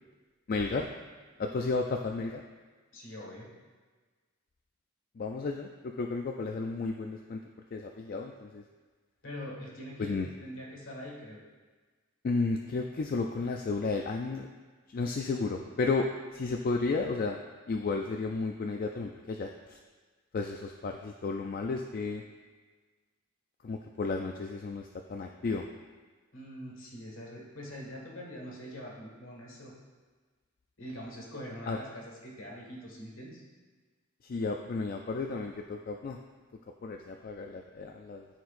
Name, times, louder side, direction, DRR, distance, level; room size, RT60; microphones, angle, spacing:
voice 1, 0.5-0.9 1.4-2.4 5.2-7.4 7.7-8.6 10.0-10.3 12.2-14.5 14.9-17.4 17.7-19.8 20.3-22.2 23.6-25.7 31.7-31.8 34.2-36.2 36.8-38.3, left 3 dB, 40° left, 3 dB, 0.3 m, -33 dB
voice 2, 2.9-3.5 9.2-11.4 26.3-29.7 30.8-33.4, equal, 60° left, -3 dB, 1.8 m, -43 dB
13.0 x 4.5 x 2.5 m, 1.4 s
head